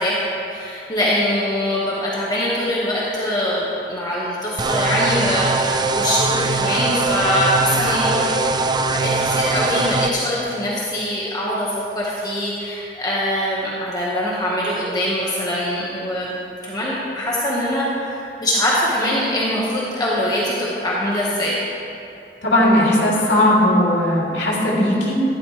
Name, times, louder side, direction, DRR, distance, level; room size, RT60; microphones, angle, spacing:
voice 1, 0.0-11.7 11.9-16.3 16.6-21.5, left 1 dB, 25° left, -6 dB, 1.7 m, -23 dB
sound 1, 4.6-10.1, right 3 dB, 25° right, 0.5 m, -21 dB
voice 2, 22.4-25.2, left 1 dB, 85° left, -5 dB, 3.0 m, -17 dB
16.0 x 11.5 x 3.4 m, 2.7 s
head